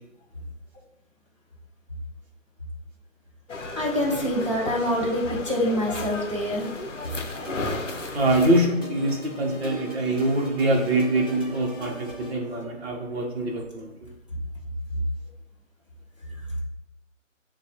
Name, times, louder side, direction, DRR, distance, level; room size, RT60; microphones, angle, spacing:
sound 1, 3.5-8.7, left 3 dB, 65° left, 0.7 m, -34 dB
voice 1, 3.8-6.7, left 1 dB, 25° right, -5 dB, 0.5 m, -25 dB
sound 2, 7.0-12.3, right 3 dB, 20° left, 0.6 m, -39 dB
voice 2, 8.1-13.9, right 1 dB, 50° right, -1 dB, 1.0 m, -24 dB
6.8 x 2.3 x 2.8 m, 0.89 s
figure-of-eight pair, 150°, 40 cm